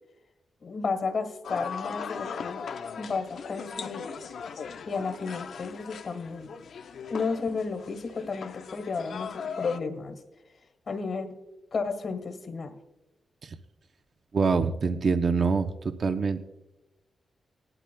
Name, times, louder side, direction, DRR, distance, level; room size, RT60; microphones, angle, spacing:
voice 1, 0.6-2.6 3.0-4.0 4.9-6.5 7.1-10.2 10.9-11.4 11.7-12.7, left 4 dB, 50° left, 8 dB, 1.4 m, -32 dB
sound 1, 1.4-9.8, left 6 dB, 75° left, 0.6 m, -39 dB
voice 2, 14.3-16.4, right 4 dB, 45° right, 8 dB, 0.6 m, -25 dB
19.5 x 12.0 x 2.3 m, 0.98 s
wide cardioid pair, 145°, 0 cm